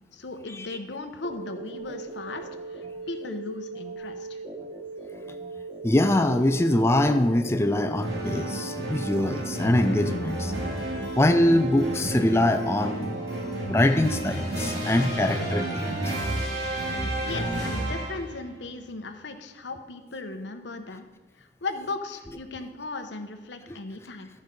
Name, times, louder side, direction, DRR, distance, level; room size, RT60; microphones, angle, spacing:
voice 1, 0.1-4.4 17.2-21.1 21.4-24.3, left 3 dB, 85° left, 7 dB, 0.9 m, -37 dB
sound 1, 1.2-13.6, right 3 dB, 30° right, 0.6 m, -39 dB
voice 2, 5.8-10.5 11.2-13.3 13.7-16.2 23.7-23.8, left 1 dB, 15° left, 7 dB, 0.4 m, -23 dB
sound 2, 8.0-18.4, right 1 dB, 65° right, 2.7 m, -31 dB
12.0 x 5.3 x 5.2 m, 1.2 s
head